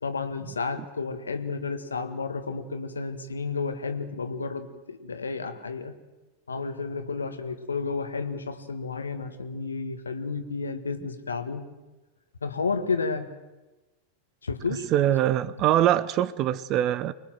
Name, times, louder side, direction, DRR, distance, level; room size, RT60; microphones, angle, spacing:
voice 1, 0.0-5.9 6.5-11.7 12.4-13.3 14.4-14.9, left 4 dB, 75° left, 1.7 m, -31 dB
voice 2, 14.9-17.1, right 12 dB, 35° right, 0.9 m, -23 dB
25.0 x 21.0 x 7.6 m
figure-of-eight pair, 90°, 0 cm